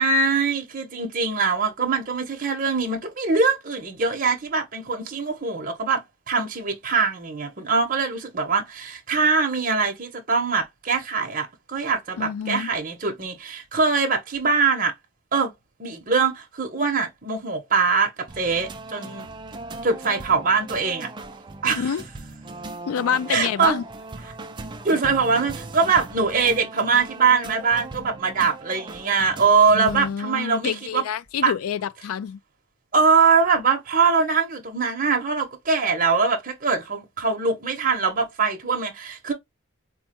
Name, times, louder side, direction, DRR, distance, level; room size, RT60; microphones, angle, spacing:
voice 1, 0.0-14.9 15.3-15.5 15.8-19.3 19.8-21.1 21.6-21.9 23.3-23.8 24.8-31.0 31.4-31.5 32.9-39.3, right 4 dB, 40° right, 0.8 m, -22 dB
voice 2, 12.2-12.7 21.8-22.0 22.9-23.8 29.7-32.4, left 8 dB, 80° left, 0.3 m, -27 dB
sound 1, 18.3-30.1, right 2 dB, 20° right, 0.4 m, -38 dB
4.4 x 2.1 x 2.8 m
head